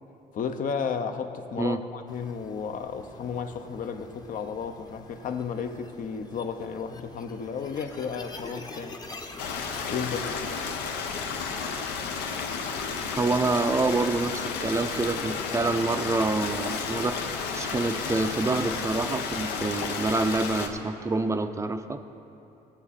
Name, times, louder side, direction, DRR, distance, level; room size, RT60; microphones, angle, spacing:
voice 1, 0.3-9.0 9.9-10.3, left 6 dB, 55° left, 0.8 m, -33 dB
sound 1, 2.1-10.1, left 3 dB, 25° left, 0.9 m, -46 dB
Stream, 9.4-20.7, left 5 dB, 85° left, 0.9 m, -32 dB
voice 2, 13.2-22.0, right 3 dB, 15° right, 0.5 m, -27 dB
18.0 x 7.0 x 4.2 m
cardioid pair, 110°, 17 cm